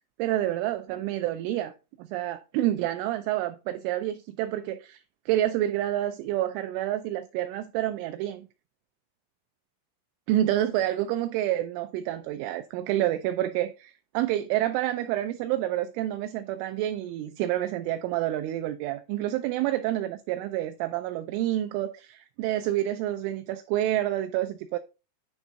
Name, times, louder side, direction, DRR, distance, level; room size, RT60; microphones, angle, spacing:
voice 1, 0.2-1.7 2.0-5.0 5.3-8.5 10.3-24.8, right 13 dB, 85° right, 2.7 m, -28 dB
10.5 x 3.6 x 3.9 m
omnidirectional pair, 5.9 m